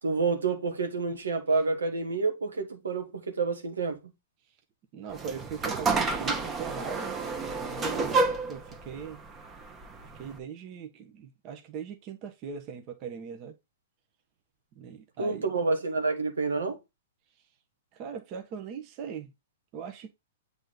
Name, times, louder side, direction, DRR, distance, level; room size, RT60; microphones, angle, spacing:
voice 1, 0.0-4.1 15.2-16.8, right 4 dB, 80° right, 1.6 m, -28 dB
voice 2, 4.9-7.2 7.6-8.2 8.5-9.2 10.1-13.5 14.7-15.5 17.9-19.3 19.7-20.1, right 7 dB, 40° right, 1.1 m, -40 dB
sound 1, 5.1-10.4, right 3 dB, 20° right, 1.1 m, -30 dB
7.9 x 3.6 x 3.9 m
hypercardioid pair, 115°, 0 cm